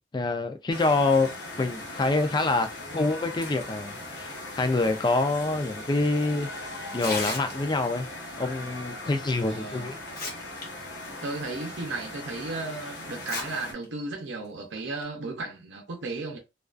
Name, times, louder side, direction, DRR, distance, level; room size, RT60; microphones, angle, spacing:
voice 1, 0.1-1.3 1.6-6.5 6.9-8.1 8.4-10.0, left 3 dB, 25° left, 0.3 m, -26 dB
sound 1, 0.7-13.7, left 2 dB, 80° left, 1.0 m, -39 dB
Tearing, 6.9-7.9 9.3-9.4 9.9-10.6 11.0-11.1 11.8-11.9 13.1-13.4 13.8-13.9 14.8-15.0, left 3 dB, 55° left, 0.8 m, -34 dB
voice 2, 9.5-9.9 11.2-16.4, right 3 dB, 85° right, 0.6 m, -35 dB
2.3 x 2.3 x 2.4 m
head